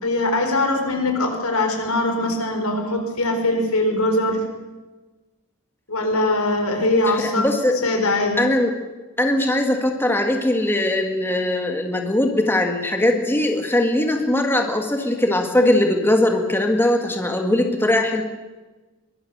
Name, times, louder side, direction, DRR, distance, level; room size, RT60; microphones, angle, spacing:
voice 1, 0.0-4.4 5.9-7.5 7.8-8.4, left 2 dB, 85° left, 4 dB, 4.6 m, -21 dB
voice 2, 7.2-7.7 8.4-8.7 9.2-18.2, left 1 dB, 10° left, 3 dB, 1.8 m, -20 dB
23.0 x 20.0 x 6.7 m, 1.2 s
head